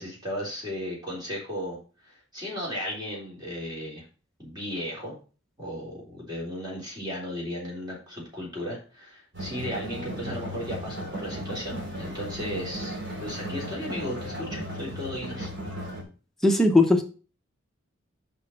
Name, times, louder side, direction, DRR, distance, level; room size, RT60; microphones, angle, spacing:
voice 1, 0.0-1.8 2.0-4.1 4.4-5.1 5.6-15.5, equal, 20° right, -4 dB, 3.6 m, -35 dB
sound 1, 9.3-16.0, equal, 60° right, 2.8 m, -36 dB
voice 2, 16.4-17.0, left 2 dB, ahead, 2 dB, 0.9 m, -18 dB
6.4 x 5.4 x 5.6 m, 0.36 s
head